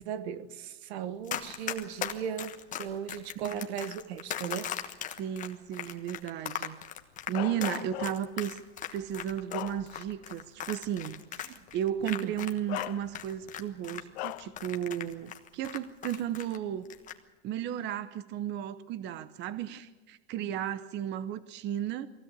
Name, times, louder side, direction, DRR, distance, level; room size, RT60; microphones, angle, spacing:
voice 1, 0.0-4.7 12.0-12.3 20.4-20.5, right 8 dB, 80° right, 1.4 m, -37 dB
Run, 1.3-12.9 13.1-16.6 16.9-17.2, left 10 dB, 25° left, 1.4 m, -38 dB
voice 2, 5.2-6.8 7.3-8.6 8.9-16.9 17.4-22.1, right 10 dB, 35° right, 0.9 m, -34 dB
Bark, 7.3-8.4 9.0-10.3 10.7-10.9 12.0-12.1 12.7-13.5 14.1-14.6, left 18 dB, 90° left, 0.7 m, -39 dB
22.0 x 16.5 x 8.3 m
supercardioid pair, 155°, 31 cm